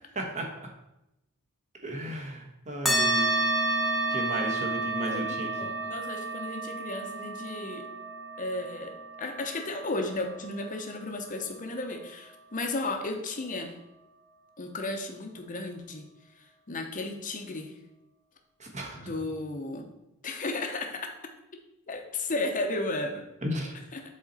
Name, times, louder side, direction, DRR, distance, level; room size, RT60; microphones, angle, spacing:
voice 1, 0.1-0.7 1.8-3.3 4.1-5.7 18.6-19.1 23.4-23.7, right 1 dB, 35° right, 1 dB, 1.2 m, -34 dB
sound 1, 2.9-11.8, right 2 dB, ahead, 1.0 m, -31 dB
voice 2, 5.0-7.9 8.4-8.9 9.2-13.7 14.6-16.0 16.7-17.7 18.9-19.9 20.2-21.1 21.9-23.2 23.9-24.0, left 2 dB, 35° left, 4 dB, 0.8 m, -34 dB
7.3 x 4.1 x 4.1 m, 0.89 s
head